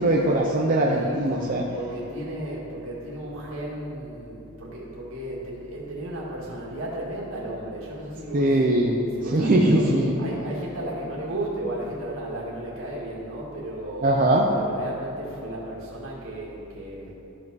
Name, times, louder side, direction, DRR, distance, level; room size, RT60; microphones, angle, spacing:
voice 1, 0.0-1.6 8.3-9.0 9.3-10.1 14.0-14.5, right 1 dB, 40° right, -2 dB, 0.6 m, -21 dB
voice 2, 0.9-8.6 9.2-9.9 10.2-14.1 14.5-17.1, right 1 dB, 65° right, -4 dB, 2.1 m, -34 dB
13.5 x 5.1 x 4.0 m, 2.9 s
head